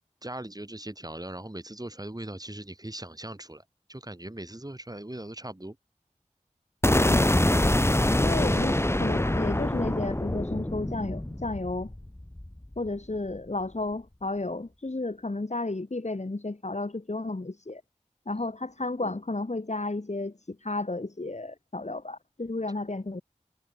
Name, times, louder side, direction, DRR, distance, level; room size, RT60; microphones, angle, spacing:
voice 1, 0.2-5.8 18.3-18.4, right 1 dB, 30° right, 4.8 m, -40 dB
sound 1, 6.8-12.9, left 1 dB, 20° left, 1.2 m, -25 dB
voice 2, 6.9-7.2 8.2-11.9 12.8-17.8 18.3-23.2, left 2 dB, 65° left, 2.8 m, -32 dB
wide cardioid pair, 45°, 13 cm